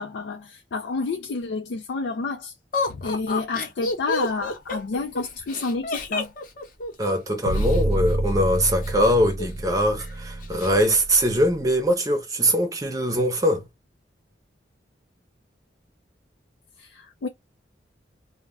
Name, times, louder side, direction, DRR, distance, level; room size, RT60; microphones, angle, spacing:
voice 1, 0.0-2.5 2.9-6.3 16.8-17.3, left 4 dB, 75° left, 0.4 m, -29 dB
Laughter, 2.7-7.8 8.8-9.7 10.0-10.1 10.4-10.9, left 2 dB, 45° left, 0.7 m, -30 dB
voice 2, 7.0-13.6, equal, 20° right, 0.6 m, -22 dB
sound 1, 7.5-11.6, right 1 dB, 80° right, 0.6 m, -27 dB
2.2 x 2.1 x 3.4 m
head